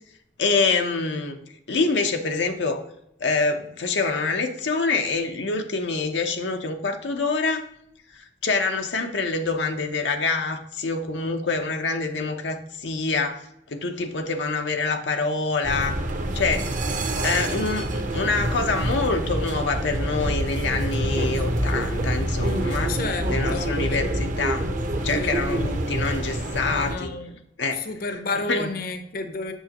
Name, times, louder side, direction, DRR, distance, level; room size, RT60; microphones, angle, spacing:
voice 1, 0.4-1.4 1.7-2.8 3.2-7.7 8.1-13.4 13.7-16.0 16.3-16.7 17.2-23.0 23.3-24.7 25.0-27.1 27.6-27.9 28.5-28.7, left 3 dB, 85° left, 5 dB, 0.8 m, -26 dB
sound 1, 15.6-27.0, right 1 dB, 45° right, 0.8 m, -26 dB
voice 2, 22.7-24.0 25.1-25.4 26.8-27.4 27.7-29.5, left 3 dB, 55° left, 7 dB, 0.7 m, -32 dB
8.1 x 6.6 x 2.9 m, 0.76 s
head